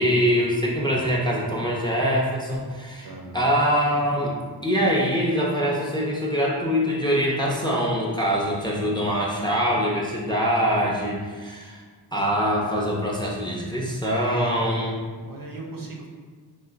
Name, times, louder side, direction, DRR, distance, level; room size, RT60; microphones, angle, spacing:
voice 1, 0.0-3.1 3.3-4.3 4.6-11.8 12.1-15.0, equal, 10° left, -3 dB, 0.4 m, -23 dB
voice 2, 3.0-3.4 15.2-16.1, right 3 dB, 50° right, 0 dB, 0.6 m, -39 dB
3.8 x 2.4 x 2.4 m, 1.5 s
wide cardioid pair, 75°, 43 cm